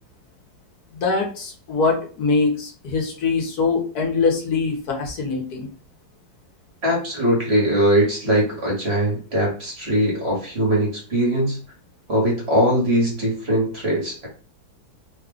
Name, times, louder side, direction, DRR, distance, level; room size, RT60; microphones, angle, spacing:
voice 1, 0.9-5.7, left 4 dB, 55° left, 0 dB, 1.4 m, -23 dB
voice 2, 6.8-11.6 12.1-14.3, equal, 40° right, -2 dB, 1.2 m, -21 dB
3.3 x 2.3 x 3.6 m, 0.39 s
omnidirectional pair, 2.1 m